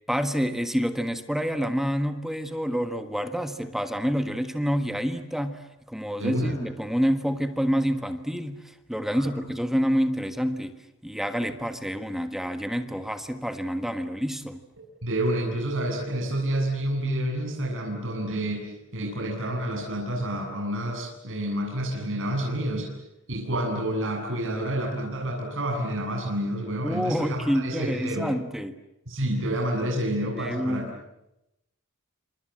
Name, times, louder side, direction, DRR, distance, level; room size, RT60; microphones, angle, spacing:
voice 1, 0.1-14.6 26.8-28.8 30.4-31.0, equal, ahead, 8 dB, 1.5 m, -28 dB
voice 2, 6.2-6.5 9.1-9.2 15.0-22.9 23.3-28.3 29.1-30.8, right 1 dB, 60° right, -1 dB, 7.7 m, -29 dB
28.5 x 27.0 x 7.7 m, 0.87 s
head